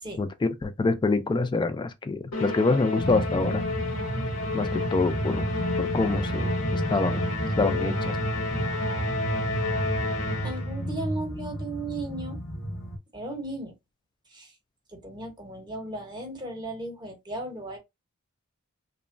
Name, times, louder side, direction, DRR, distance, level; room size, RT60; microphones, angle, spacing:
voice 1, 0.2-3.6 4.5-5.5 5.8-7.2 7.6-8.2, left 3 dB, 20° left, 0.3 m, -26 dB
Musical instrument, 2.3-10.8, left 2 dB, 85° left, 0.9 m, -31 dB
sound 1, 3.0-13.0, equal, 60° left, 0.7 m, -32 dB
voice 2, 10.4-12.4 13.1-13.7 14.3-14.5 14.9-17.8, right 2 dB, 20° right, 0.8 m, -36 dB
2.9 x 2.1 x 2.5 m
head